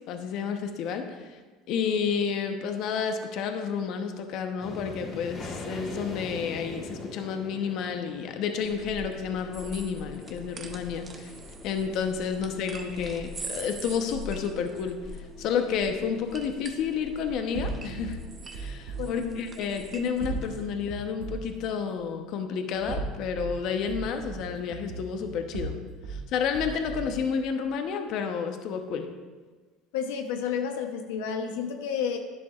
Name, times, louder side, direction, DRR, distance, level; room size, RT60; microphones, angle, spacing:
voice 1, 0.1-1.4 1.7-11.3 11.6-18.2 18.5-25.8 26.1-29.1, left 6 dB, 60° left, 6 dB, 0.9 m, -30 dB
sound 1, 4.6-13.8, left 2 dB, 30° left, 1.9 m, -43 dB
sound 2, 8.6-20.7, right 1 dB, 25° right, 0.9 m, -43 dB
sound 3, 17.5-19.1 20.2-21.5 22.7-23.5 23.9-26.2 26.5-27.2, right 4 dB, 80° right, 1.7 m, -36 dB
voice 2, 19.0-19.4 29.9-32.2, left 7 dB, 90° left, 4 dB, 0.8 m, -31 dB
10.5 x 10.5 x 2.5 m, 1.4 s
supercardioid pair, 120°, 0 cm